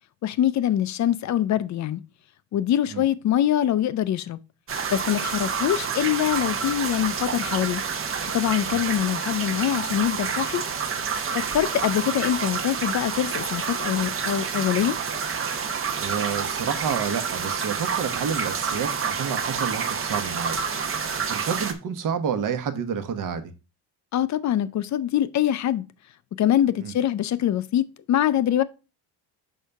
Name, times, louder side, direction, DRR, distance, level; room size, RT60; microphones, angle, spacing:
voice 1, 0.2-2.0 2.5-4.4 4.9-7.8 8.3-10.6 11.3-15.0 24.1-25.8 26.4-28.6, left 11 dB, 45° left, 0.5 m, -24 dB
sound 1, 4.7-21.7, right 6 dB, 30° right, 0.8 m, -28 dB
voice 2, 16.0-20.6 21.3-23.5 26.8-26.9, right 7 dB, 50° right, 1.1 m, -29 dB
6.5 x 5.5 x 3.4 m
cardioid pair, 155°, 42 cm